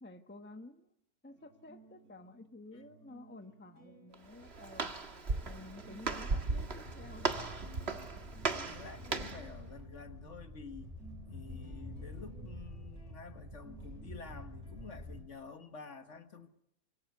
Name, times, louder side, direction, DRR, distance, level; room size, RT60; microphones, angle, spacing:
voice 1, 0.0-0.9 1.2-4.9 5.4-7.3, left 2 dB, 10° left, 7 dB, 1.0 m, -52 dB
sound 1, 1.3-15.9, right 4 dB, 65° right, 6.8 m, -61 dB
Walk footsteps, 4.1-9.5, right 3 dB, 40° right, 1.9 m, -37 dB
sound 2, 6.2-15.2, left 1 dB, 20° right, 4.6 m, -48 dB
voice 2, 7.6-8.1 8.5-10.9 11.3-16.5, left 5 dB, 50° left, 8 dB, 1.7 m, -50 dB
25.5 x 21.5 x 9.5 m, 0.79 s
omnidirectional pair, 1.6 m